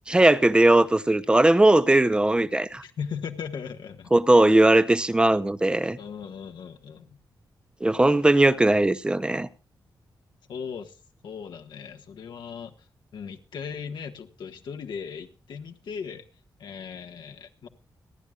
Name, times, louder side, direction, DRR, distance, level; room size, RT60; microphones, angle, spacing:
voice 1, 0.1-2.8 4.1-6.0 7.8-9.5, right 2 dB, 10° right, 0.7 m, -19 dB
voice 2, 2.7-4.1 6.0-7.2 10.5-11.0 11.2-12.7 13.1-16.2 16.6-17.7, left 6 dB, 80° left, 1.5 m, -37 dB
30.0 x 11.0 x 2.4 m
wide cardioid pair, 140°, 7 cm